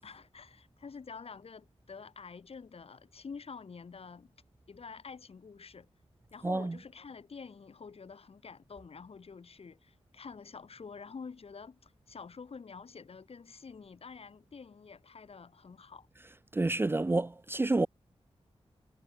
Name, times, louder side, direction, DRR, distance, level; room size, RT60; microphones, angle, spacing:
voice 1, 0.0-4.3 4.7-5.9 6.3-16.1, left 5 dB, 65° left, 6.9 m, -48 dB
voice 2, 6.4-6.8 16.5-17.9, right 2 dB, 20° right, 0.5 m, -29 dB
wide cardioid pair, 115°, 11 cm